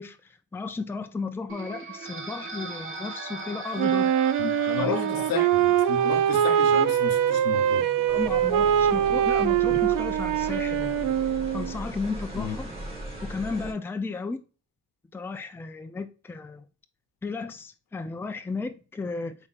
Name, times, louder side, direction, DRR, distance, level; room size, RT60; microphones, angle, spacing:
voice 1, 0.0-4.1 4.8-5.3 8.1-11.1 11.5-12.7 13.2-14.4 15.1-16.7 17.2-19.3, left 4 dB, 5° left, 0.4 m, -34 dB
sound 1, 1.5-9.1, right 3 dB, 35° right, 1.0 m, -40 dB
Wind instrument woodwind instrument, 3.8-11.8, right 10 dB, 60° right, 0.5 m, -23 dB
voice 2, 4.4-7.9 12.3-12.6, left 7 dB, 75° left, 0.9 m, -32 dB
sound 2, 8.1-13.7, right 1 dB, 15° right, 2.1 m, -38 dB
3.9 x 3.5 x 2.4 m
supercardioid pair, 70°, 37 cm